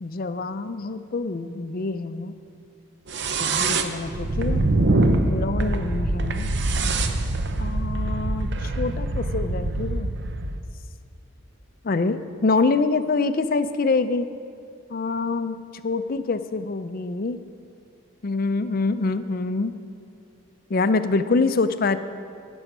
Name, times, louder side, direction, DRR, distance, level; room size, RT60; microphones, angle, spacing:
voice 1, 0.0-2.3 3.4-4.6 5.3-6.5 7.6-10.1 11.8-14.3 14.9-15.6 15.8-17.4 18.2-19.7 20.7-22.0, left 3 dB, 40° left, 11 dB, 0.4 m, -25 dB
sound 1, 3.1-10.6, right 2 dB, 55° right, 0.6 m, -24 dB
15.5 x 6.2 x 6.0 m, 2.3 s
head